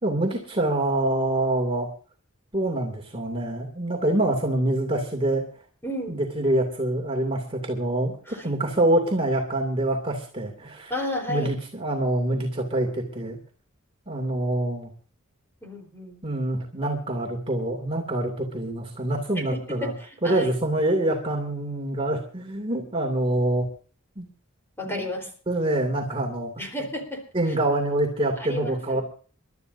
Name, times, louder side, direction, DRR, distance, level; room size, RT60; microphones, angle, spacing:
voice 1, 0.0-1.9 2.5-5.4 6.1-10.9 11.3-13.4 14.1-14.9 16.2-19.9 20.2-23.7 24.2-24.3 24.8-25.1 25.5-26.5 27.3-29.0, right 1 dB, 25° right, 1 dB, 2.5 m, -25 dB
voice 2, 5.8-6.2 8.3-8.5 10.9-11.5 15.6-16.2 19.3-19.9 20.2-20.5 24.8-25.3 26.6-27.3 28.4-29.0, left 1 dB, 10° left, 2 dB, 3.9 m, -32 dB
28.5 x 12.5 x 2.7 m, 0.39 s
head